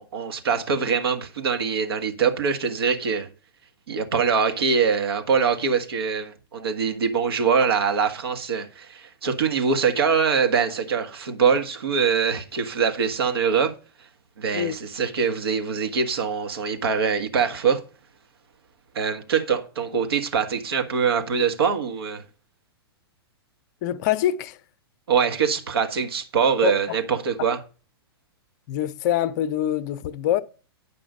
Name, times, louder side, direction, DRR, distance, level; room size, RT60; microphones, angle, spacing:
voice 1, 0.0-3.3 3.9-13.7 14.4-17.8 18.9-22.2 25.1-27.6, right 6 dB, 70° right, 1.6 m, -23 dB
voice 2, 23.8-24.6 26.6-27.0 28.7-30.4, left 11 dB, 45° left, 0.7 m, -25 dB
9.8 x 5.4 x 5.4 m
figure-of-eight pair, 110°, 13 cm